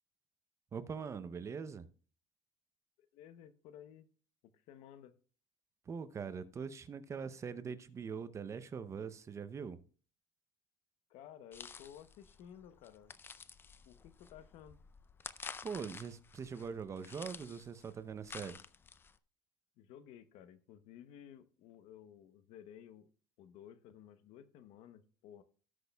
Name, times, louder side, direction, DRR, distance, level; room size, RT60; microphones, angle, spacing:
voice 1, 0.7-1.9 5.9-9.8 15.6-18.6, right 6 dB, 30° right, 0.6 m, -42 dB
voice 2, 3.0-4.1 4.4-5.1 11.1-13.2 13.9-14.8 19.8-23.1 23.4-25.4, left 10 dB, 70° left, 0.8 m, -55 dB
sound 1, 11.5-19.2, left 5 dB, 20° left, 0.4 m, -51 dB
18.0 x 6.3 x 2.3 m
cardioid pair, 130°, 10 cm